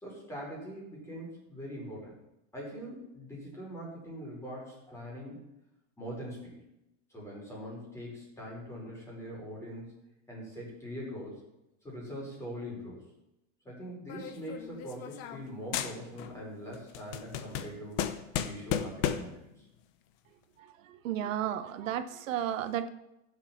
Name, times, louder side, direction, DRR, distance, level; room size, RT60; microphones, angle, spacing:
voice 1, 0.0-2.1 2.5-5.4 6.0-6.6 7.1-9.9 10.3-11.4 11.8-13.0 13.6-19.4, equal, 5° left, -4 dB, 5.2 m, -42 dB
sound 1, 14.1-15.5 15.7-16.4 16.7-19.4, left 10 dB, 30° left, 0.8 m, -35 dB
voice 2, 20.8-22.9, right 10 dB, 80° right, 10 dB, 1.1 m, -33 dB
16.5 x 7.8 x 5.9 m, 0.89 s
supercardioid pair, 165°, 39 cm